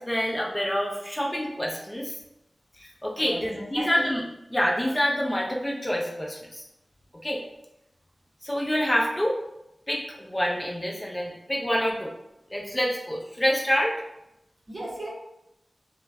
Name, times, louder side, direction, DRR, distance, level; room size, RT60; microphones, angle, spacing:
voice 1, 0.0-2.1 2.8-4.2 4.5-6.6 7.2-7.4 8.4-9.4 9.9-12.1 12.5-14.0, equal, 20° left, -2 dB, 0.4 m, -27 dB
voice 2, 3.2-4.1 14.7-15.1, right 1 dB, 45° right, -3 dB, 0.7 m, -35 dB
2.4 x 2.1 x 3.3 m, 0.85 s
wide cardioid pair, 85°, 0 cm